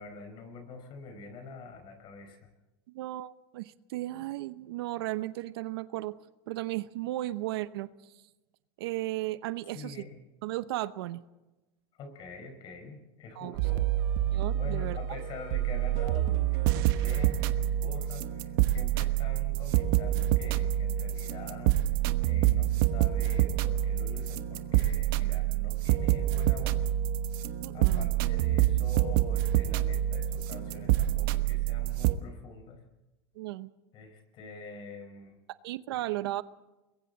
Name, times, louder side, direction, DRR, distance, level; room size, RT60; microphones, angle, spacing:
voice 1, 0.0-2.5 9.7-10.2 11.9-13.9 14.6-26.9 27.7-32.8 33.9-35.4 35.9-36.0, left 4 dB, 40° left, 7 dB, 5.1 m, -45 dB
voice 2, 2.9-6.2 6.5-7.9 8.8-9.9 10.4-11.2 13.4-13.6 14.3-15.0 27.6-28.1 33.4-33.7 35.6-36.4, right 16 dB, 80° right, 14 dB, 0.9 m, -35 dB
sound 1, 13.6-32.2, right 13 dB, 65° right, 1.2 m, -27 dB
28.5 x 22.0 x 4.1 m, 1.1 s
supercardioid pair, 145°, 13 cm